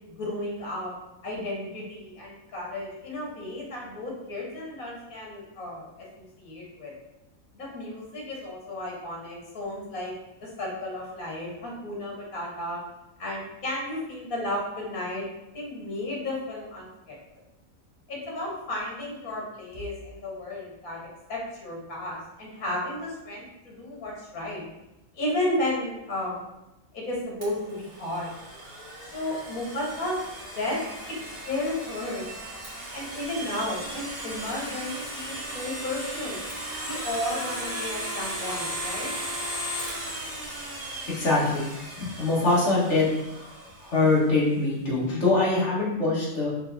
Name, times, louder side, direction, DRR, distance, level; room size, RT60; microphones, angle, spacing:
voice 1, 0.2-0.9 1.2-6.9 7.5-10.1 10.4-12.8 13.2-15.3 15.5-17.2 18.1-21.0 21.3-24.6 25.1-26.5 26.9-28.3 29.1-30.2 30.6-30.8 31.5-32.2 32.9-36.4 36.8-39.1, left 1 dB, 80° left, -3 dB, 1.8 m, -33 dB
Domestic sounds home sounds, 27.4-44.2, right 1 dB, 85° right, 2.1 m, -36 dB
voice 2, 41.1-41.7 42.0-43.1 43.8-46.5, left 3 dB, 55° left, -7 dB, 1.8 m, -23 dB
5.6 x 3.4 x 2.7 m, 0.93 s
omnidirectional pair, 1.5 m